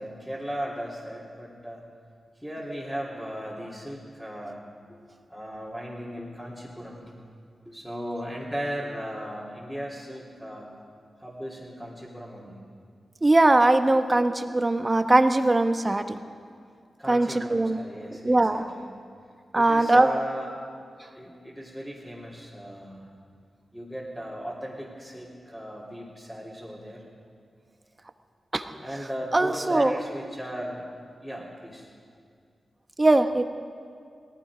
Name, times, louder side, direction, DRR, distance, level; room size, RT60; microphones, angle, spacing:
voice 1, 0.0-1.8 2.4-4.6 5.3-7.1 7.7-10.7 11.2-12.6 17.0-18.9 19.5-20.5 21.1-23.1 23.7-27.0 28.8-30.8 31.2-31.9, equal, 5° left, -7 dB, 3.3 m, -36 dB
voice 2, 13.2-16.2 17.1-17.8 18.2-18.7 19.5-20.1 28.5-28.6 29.3-30.0 33.0-33.5, right 2 dB, 30° right, 8 dB, 1.0 m, -21 dB
18.0 x 15.0 x 5.1 m, 2.2 s
cardioid pair, 45°, 0 cm